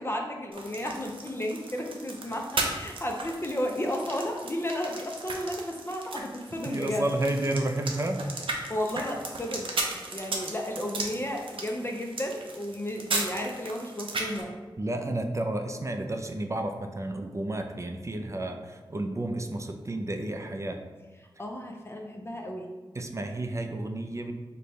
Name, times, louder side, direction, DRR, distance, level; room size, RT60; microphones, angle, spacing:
voice 1, 0.0-7.1 8.7-9.7 10.1-14.5 21.4-22.7, left 1 dB, 25° left, 1 dB, 0.5 m, -33 dB
sound 1, 0.5-14.4, right 3 dB, 80° right, 0.6 m, -36 dB
voice 2, 6.7-8.2 14.8-20.8 22.9-24.3, right 1 dB, 35° right, 5 dB, 0.4 m, -31 dB
5.0 x 2.2 x 4.0 m, 1.3 s
wide cardioid pair, 60°, 9 cm